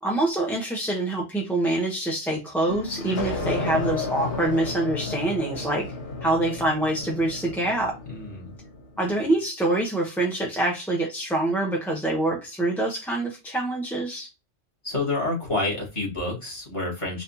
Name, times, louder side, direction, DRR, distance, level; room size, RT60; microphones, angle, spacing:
voice 1, 0.0-5.9 6.2-8.0 9.0-14.3, right 2 dB, ahead, 0.6 m, -25 dB
sound 1, 2.7-9.0, left 3 dB, 65° left, 1.5 m, -32 dB
voice 2, 8.1-8.5 14.8-17.2, left 2 dB, 25° left, 1.8 m, -28 dB
4.1 x 2.7 x 2.6 m
omnidirectional pair, 1.2 m